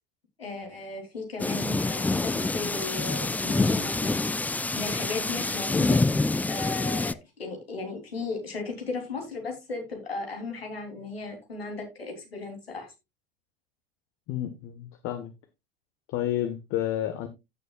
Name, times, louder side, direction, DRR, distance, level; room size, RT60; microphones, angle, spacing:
voice 1, 0.4-4.4 4.7-6.0 6.4-12.9, left 3 dB, 90° left, 3.3 m, -36 dB
sound 1, 1.4-7.1, left 3 dB, 5° left, 0.4 m, -26 dB
voice 2, 14.3-15.3 16.1-17.3, left 12 dB, 50° left, 1.4 m, -30 dB
15.5 x 6.8 x 2.4 m
hypercardioid pair, 80°, 29 cm